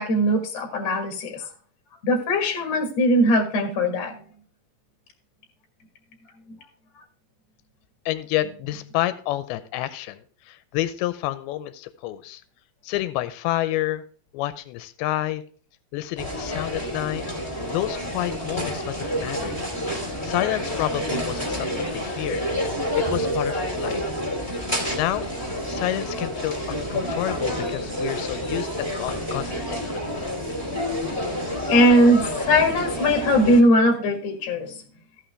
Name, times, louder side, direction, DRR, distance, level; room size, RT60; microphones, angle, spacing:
voice 1, 0.0-1.4 2.0-4.2 31.7-34.7, equal, 55° left, 3 dB, 1.9 m, -20 dB
voice 2, 8.1-12.4 12.8-14.0 14.3-15.4 15.9-17.2 17.7-19.6 20.2-22.4 22.9-24.0 24.9-25.3 25.7-30.0, left 15 dB, 80° left, 12 dB, 2.4 m, -29 dB
sound 1, 16.2-33.6, equal, 5° left, 1.3 m, -29 dB
15.0 x 5.7 x 3.3 m, 0.42 s
omnidirectional pair, 4.8 m